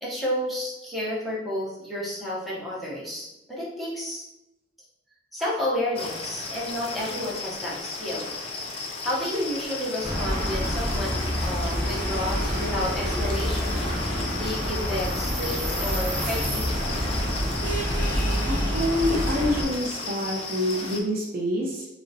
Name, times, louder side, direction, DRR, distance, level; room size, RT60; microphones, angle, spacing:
voice 1, 0.0-4.2 5.3-8.4 9.0-16.9, left 1 dB, ahead, -7 dB, 0.7 m, -31 dB
sound 1, 6.0-21.0, left 3 dB, 30° left, 0.3 m, -35 dB
sound 2, 10.0-19.6, equal, 25° right, 1.0 m, -27 dB
voice 2, 18.5-21.9, left 1 dB, 50° right, -2 dB, 0.5 m, -27 dB
3.8 x 2.0 x 2.6 m, 0.93 s
head